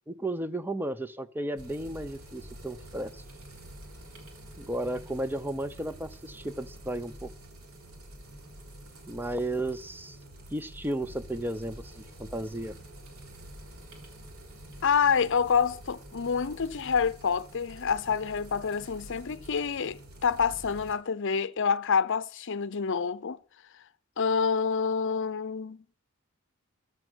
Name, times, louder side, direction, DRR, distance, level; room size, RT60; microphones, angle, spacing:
voice 1, 0.1-3.2 4.6-7.3 9.1-10.2 10.5-12.7, right 1 dB, 10° right, 0.7 m, -34 dB
sound 1, 1.6-20.9, right 1 dB, 80° right, 3.7 m, -47 dB
voice 2, 14.8-23.4 24.2-25.8, left 6 dB, 60° left, 0.7 m, -27 dB
14.5 x 10.5 x 6.2 m
head